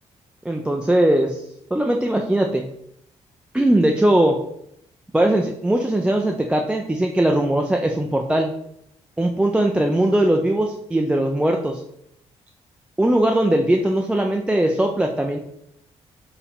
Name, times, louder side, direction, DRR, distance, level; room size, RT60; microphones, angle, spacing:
voice 1, 0.4-1.4 1.7-2.6 3.5-4.4 5.1-8.5 9.2-11.8 13.0-15.4, right 1 dB, 10° right, 2 dB, 0.4 m, -20 dB
4.7 x 2.7 x 3.5 m, 0.74 s
cardioid pair, 85°, 12 cm